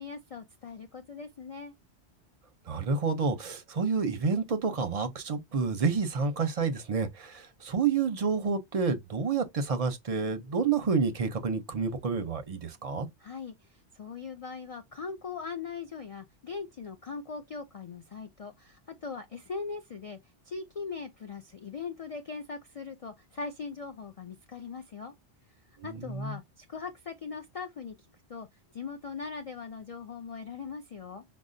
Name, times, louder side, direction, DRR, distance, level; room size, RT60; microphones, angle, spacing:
voice 1, 0.0-1.7 13.2-20.2 20.4-25.1 25.8-28.0 28.3-28.5 28.7-31.2, left 5 dB, 65° left, 0.3 m, -40 dB
voice 2, 2.7-13.1 25.8-26.4, right 5 dB, 45° right, 0.5 m, -29 dB
5.2 x 2.0 x 2.5 m
omnidirectional pair, 1.2 m